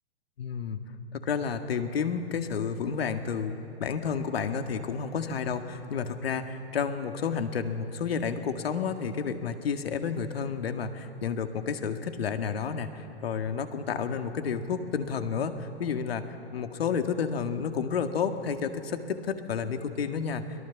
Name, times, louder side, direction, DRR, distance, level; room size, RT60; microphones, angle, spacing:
voice 1, 0.4-0.8 1.1-20.4, left 6 dB, 65° left, 7 dB, 1.9 m, -31 dB
23.0 x 21.5 x 7.2 m, 2.8 s
figure-of-eight pair, 115°, 32 cm